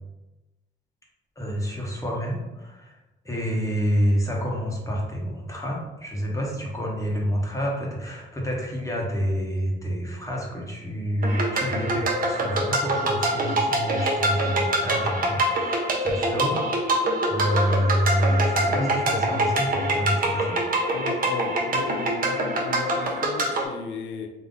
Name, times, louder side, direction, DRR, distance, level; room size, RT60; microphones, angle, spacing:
voice 1, 1.4-3.0 3.2-16.6 17.3-20.6 21.0-21.1, equal, 15° left, -3 dB, 1.1 m, -28 dB
sound 1, 11.2-23.6, right 1 dB, 45° right, 0.9 m, -25 dB
voice 2, 20.9-24.3, left 5 dB, 70° left, 4 dB, 0.6 m, -36 dB
3.9 x 2.7 x 3.7 m, 1.1 s
cardioid pair, 90°, 20 cm